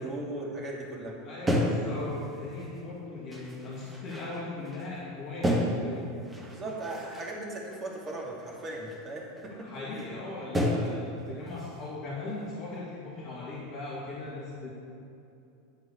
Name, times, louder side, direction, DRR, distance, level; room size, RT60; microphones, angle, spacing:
voice 1, 0.0-1.2 6.5-10.1, right 2 dB, 30° right, -2 dB, 2.7 m, -38 dB
voice 2, 1.2-6.1 9.6-14.7, left 3 dB, 45° left, -7 dB, 2.3 m, -38 dB
sound 1, 1.5-2.9 3.3-5.0 5.4-7.4 7.7-9.0 9.4-9.5 10.0-10.1 10.5-11.1 11.5-11.9 12.3-12.8, equal, 15° right, 1.9 m, -32 dB
12.0 x 4.8 x 8.3 m, 2.7 s
figure-of-eight pair, 85°, 0 cm